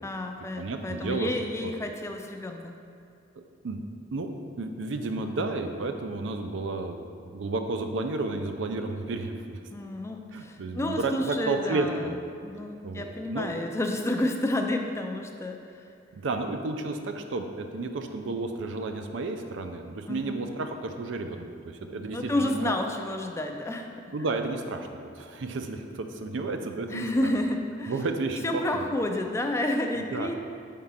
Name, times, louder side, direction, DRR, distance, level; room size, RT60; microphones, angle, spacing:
voice 1, 0.0-2.8 9.7-12.1 12.3-15.7 20.1-20.4 21.8-23.9 26.9-28.0 28.4-30.3, left 1 dB, 15° left, 3 dB, 0.3 m, -30 dB
voice 2, 0.6-1.3 1.6-1.7 3.4-3.8 4.1-4.3 4.6-9.6 10.3-12.2 12.8-13.5 16.1-22.7 24.1-27.3 27.9-28.4 28.7-28.9 30.0-30.3, right 3 dB, 75° right, 6 dB, 0.5 m, -32 dB
4.7 x 3.7 x 5.5 m, 2.4 s
head